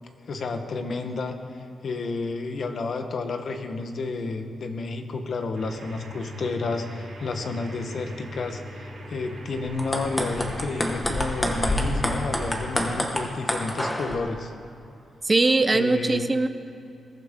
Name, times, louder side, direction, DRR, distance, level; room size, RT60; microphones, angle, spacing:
voice 1, 0.3-1.4 1.8-14.5 15.7-16.3, left 3 dB, 60° left, 6 dB, 1.2 m, -31 dB
sound 1, 5.5-12.9, equal, 70° right, 3.6 m, -40 dB
sound 2, 9.7-14.2, left 1 dB, 15° left, 1.6 m, -27 dB
voice 2, 15.2-16.5, right 3 dB, 25° right, 10 dB, 0.7 m, -21 dB
21.5 x 11.5 x 3.7 m, 2.6 s
cardioid pair, 95°, 0 cm